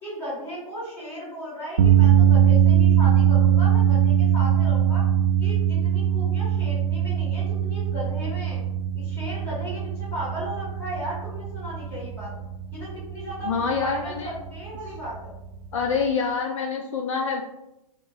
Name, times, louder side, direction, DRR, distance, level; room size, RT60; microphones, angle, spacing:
voice 1, 0.0-5.0 5.4-8.6 8.9-12.3 12.7-15.3, equal, 10° left, -7 dB, 1.4 m, -36 dB
sound 1, 1.8-16.1, right 9 dB, 75° right, 0.4 m, -22 dB
voice 2, 13.4-14.3 15.7-17.4, left 5 dB, 60° left, 1 dB, 0.5 m, -26 dB
4.6 x 3.1 x 2.4 m, 0.91 s
hypercardioid pair, 160°, 19 cm